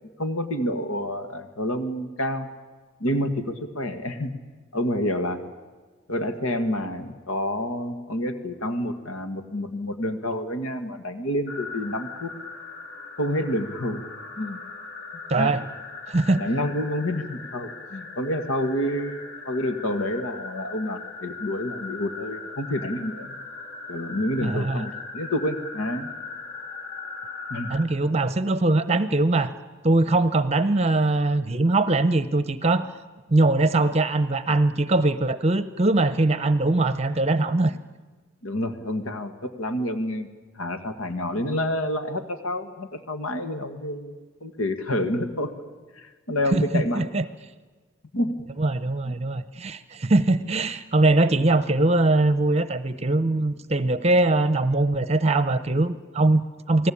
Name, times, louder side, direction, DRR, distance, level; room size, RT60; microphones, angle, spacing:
voice 1, 0.2-2.5 3.0-4.3 4.7-5.4 6.1-12.3 13.2-14.0 14.4-14.6 15.4-15.5 16.4-23.4 23.9-26.1 27.5-27.7 38.4-40.3 40.5-44.1 44.4-45.5 45.9-47.1 48.1-48.4 49.1-49.2, left 1 dB, 85° left, 8 dB, 1.9 m, -28 dB
sound 1, 11.5-27.9, left 4 dB, 50° left, 3.4 m, -39 dB
voice 2, 15.3-15.6 16.1-16.4 24.4-24.8 27.7-29.5 29.8-32.9 33.3-37.7 46.5-47.2 48.6-56.9, right 2 dB, 30° right, 13 dB, 0.8 m, -22 dB
28.5 x 19.5 x 8.6 m, 1.4 s
head